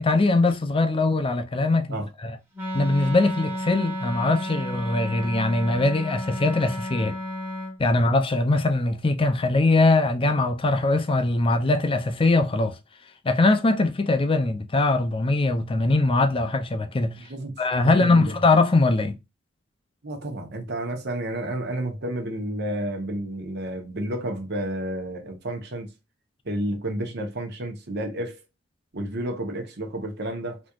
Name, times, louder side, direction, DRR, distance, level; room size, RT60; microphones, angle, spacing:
voice 1, 0.0-2.0 2.2-2.4 2.7-7.2 7.8-12.8 13.2-17.1 17.6-19.2, left 2 dB, 25° left, 0.5 m, -21 dB
Wind instrument woodwind instrument, 2.5-7.8, left 1 dB, 10° right, 1.2 m, -32 dB
voice 2, 17.1-17.5 17.8-18.3 20.0-25.9 26.4-28.4 28.9-30.6, right 1 dB, 55° right, 1.1 m, -31 dB
4.0 x 3.0 x 2.4 m
head